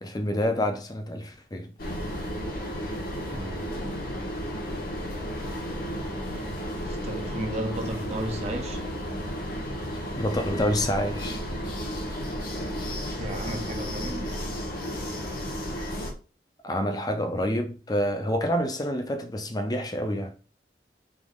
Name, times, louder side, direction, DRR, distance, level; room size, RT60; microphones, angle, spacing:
voice 1, 0.0-1.7 10.2-11.4 16.6-20.4, equal, 20° left, 0.6 m, -28 dB
sound 1, 1.8-16.1, equal, 55° left, 1.1 m, -33 dB
voice 2, 3.3-3.8 6.8-8.9 13.2-14.3, right 1 dB, 40° right, 0.6 m, -34 dB
3.6 x 3.0 x 3.6 m
head